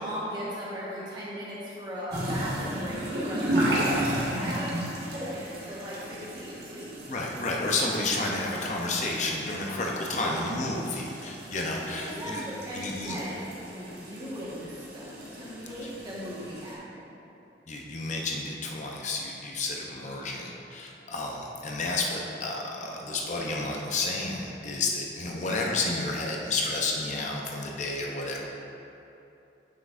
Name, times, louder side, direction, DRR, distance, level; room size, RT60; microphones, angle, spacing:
voice 1, 0.0-4.8 5.1-6.9 10.1-10.6 11.9-13.4 13.7-15.1 15.3-17.1 25.3-25.7, equal, 25° right, -7 dB, 1.4 m, -38 dB
sound 1, 2.1-16.7, right 1 dB, 60° right, 1.4 m, -34 dB
voice 2, 7.1-12.4 12.7-13.2 17.7-28.5, left 2 dB, 40° left, -1 dB, 0.7 m, -31 dB
9.3 x 5.8 x 2.5 m, 2.8 s
head